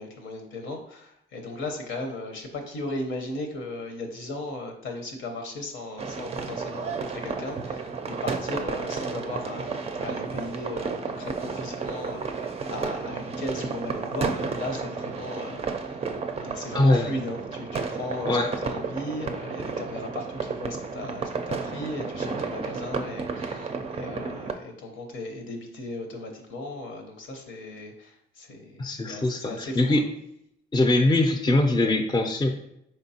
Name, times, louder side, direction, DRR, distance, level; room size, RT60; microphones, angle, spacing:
voice 1, 0.0-16.1 16.4-30.0, left 2 dB, 80° left, 3 dB, 0.8 m, -36 dB
sound 1, 6.0-24.5, right 4 dB, 30° right, 0.4 m, -32 dB
voice 2, 16.7-17.1 18.3-18.5 28.8-30.0 30.7-32.5, left 2 dB, 20° left, 5 dB, 0.5 m, -22 dB
4.4 x 3.3 x 2.8 m, 0.79 s
cardioid pair, 90°, 20 cm